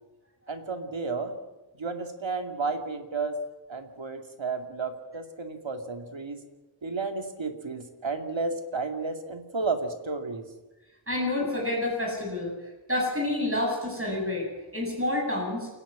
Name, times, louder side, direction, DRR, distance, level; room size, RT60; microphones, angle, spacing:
voice 1, 0.5-1.4 1.8-3.3 3.7-6.4 6.8-10.4, right 4 dB, 75° right, 5 dB, 2.4 m, -32 dB
voice 2, 11.1-12.5 12.9-15.7, left 1 dB, 30° right, -1 dB, 7.3 m, -28 dB
28.5 x 11.0 x 8.6 m, 1.1 s
wide cardioid pair, 40°, 46 cm